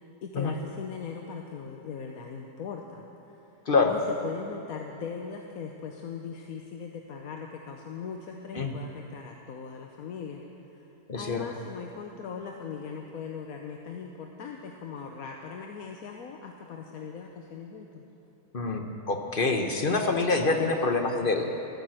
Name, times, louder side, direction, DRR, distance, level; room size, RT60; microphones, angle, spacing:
voice 1, 0.2-3.4 3.9-10.4 11.1-18.0, left 6 dB, 65° left, 2 dB, 1.2 m, -39 dB
voice 2, 11.1-11.4 18.5-21.5, left 3 dB, 40° left, 4 dB, 0.9 m, -26 dB
13.5 x 9.9 x 7.7 m, 3.0 s
omnidirectional pair, 1.8 m